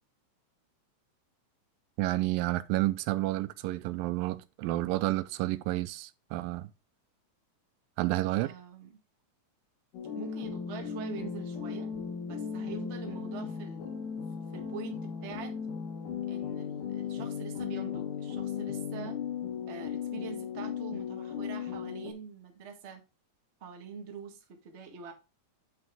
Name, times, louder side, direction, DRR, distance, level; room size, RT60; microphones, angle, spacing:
voice 1, 2.0-6.7 8.0-8.5, right 17 dB, 90° right, 2.3 m, -30 dB
voice 2, 8.4-9.0 10.1-11.9 12.2-14.0 14.5-15.5 16.3-19.2 19.7-23.0 23.6-25.1, right 6 dB, 55° right, 0.7 m, -44 dB
sound 1, 9.9-22.1, left 7 dB, 70° left, 3.3 m, -36 dB
8.1 x 5.7 x 3.5 m
omnidirectional pair, 3.9 m